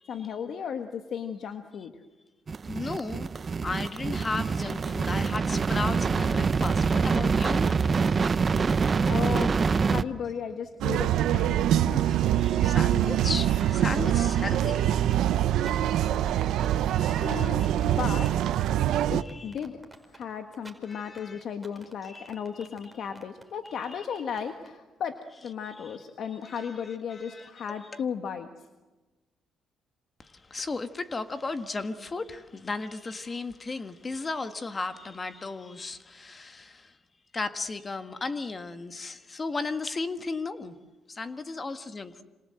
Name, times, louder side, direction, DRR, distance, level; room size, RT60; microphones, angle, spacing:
voice 1, 0.1-2.0 9.0-12.0 17.2-18.6 19.1-19.8 20.1-28.6, left 7 dB, 65° left, 6 dB, 1.6 m, -35 dB
sound 1, 2.5-10.0, right 5 dB, 40° right, 0.8 m, -25 dB
voice 2, 2.7-3.3 3.6-8.5 11.9-15.2 16.9-17.7 18.1-18.3 19.2-19.6 20.9-21.4 22.1-22.7 25.8-26.0 26.4-26.7 27.1-27.8 30.2-37.0 37.3-40.8 41.1-42.2, left 3 dB, 30° left, 9 dB, 1.6 m, -35 dB
sound 2, 10.8-19.2, right 11 dB, 80° right, 0.9 m, -24 dB
sound 3, 14.7-24.7, right 1 dB, ahead, 4.8 m, -52 dB
27.5 x 27.0 x 7.8 m, 1.2 s
cardioid pair, 90°, 0 cm